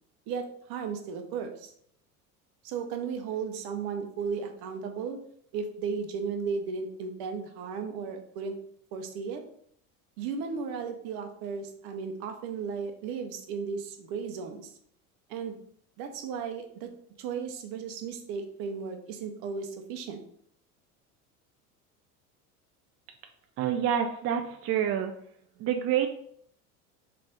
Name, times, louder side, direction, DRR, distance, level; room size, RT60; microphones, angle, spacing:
voice 1, 0.3-1.7 2.6-5.2 5.5-8.6 8.9-9.4 10.2-14.7 15.3-15.6 16.0-16.9 17.2-20.2, right 5 dB, 55° right, 6 dB, 0.9 m, -35 dB
voice 2, 23.6-25.1 25.6-26.1, right 9 dB, 35° right, 4 dB, 0.4 m, -27 dB
3.3 x 3.3 x 3.9 m, 0.66 s
hypercardioid pair, 75°, 44 cm